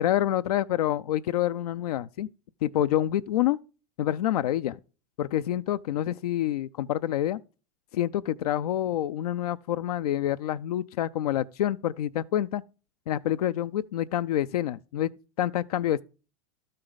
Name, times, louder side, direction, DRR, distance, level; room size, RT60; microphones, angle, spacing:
voice 1, 0.0-2.3 2.6-3.6 4.0-4.8 5.2-7.4 7.9-12.6 13.1-15.1 15.4-16.0, left 12 dB, 80° left, 0.5 m, -27 dB
12.5 x 6.5 x 4.0 m
hypercardioid pair, 115°, 19 cm